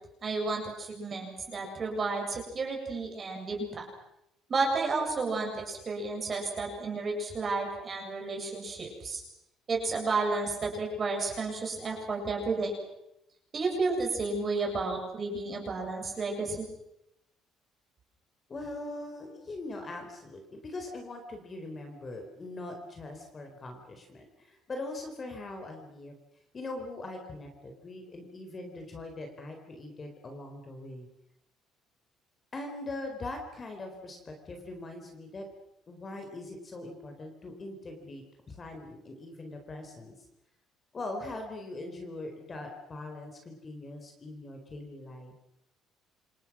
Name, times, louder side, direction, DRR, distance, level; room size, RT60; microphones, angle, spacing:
voice 1, 0.2-3.8 4.5-9.2 9.7-12.7 13.5-16.7, right 3 dB, 25° right, 1 dB, 7.4 m, -32 dB
voice 2, 18.5-26.2 26.5-31.1 32.5-35.5 35.9-40.3 40.9-45.3, left 2 dB, 20° left, 4 dB, 4.2 m, -41 dB
28.0 x 28.0 x 6.2 m, 0.83 s
cardioid pair, 175°, 0 cm